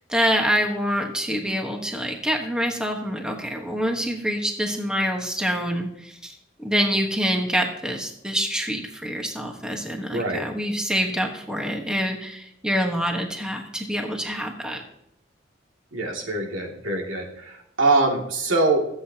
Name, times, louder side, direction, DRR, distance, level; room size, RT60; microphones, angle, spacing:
voice 1, 0.1-6.3 6.6-14.8, equal, 5° right, 2 dB, 1.3 m, -26 dB
voice 2, 10.1-10.4 15.9-18.8, right 2 dB, 90° right, 0 dB, 2.5 m, -23 dB
23.5 x 7.9 x 2.9 m, 0.79 s
head